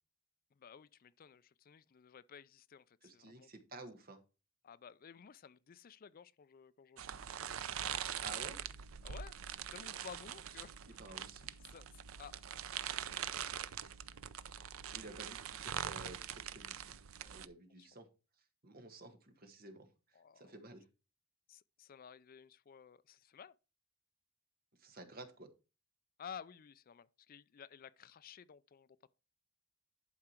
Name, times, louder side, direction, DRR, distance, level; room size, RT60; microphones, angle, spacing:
voice 1, 0.5-3.5 4.6-7.2 9.0-9.3 9.7-10.8 11.6-12.3 13.2-13.4 17.8-17.9 20.1-20.6 21.5-23.5 26.2-28.9, left 7 dB, 45° left, 0.4 m, -54 dB
voice 2, 3.0-4.2 8.2-8.6 11.0-11.6 14.9-16.9 17.2-18.1 18.6-20.8 24.8-25.5, right 2 dB, 45° right, 1.6 m, -52 dB
sound 1, 7.0-17.5, right 9 dB, 80° right, 0.6 m, -43 dB
11.0 x 4.9 x 4.4 m
head